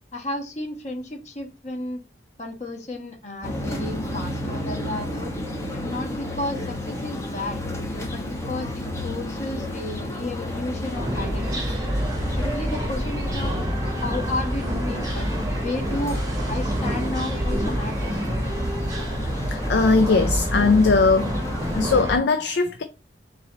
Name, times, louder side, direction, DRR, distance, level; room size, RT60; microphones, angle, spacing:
voice 1, 0.1-2.0 2.4-5.3 5.7-7.6 8.1-11.9 12.4-13.5 14.0-16.2 16.4-18.4, left 2 dB, 40° left, 1.2 m, -33 dB
sound 1, 3.4-22.0, left 1 dB, 15° left, 0.8 m, -32 dB
sound 2, 10.9-22.2, equal, 20° right, 1.0 m, -27 dB
voice 2, 19.5-21.4 21.7-22.8, left 3 dB, 75° left, 0.4 m, -19 dB
3.9 x 3.0 x 3.8 m
head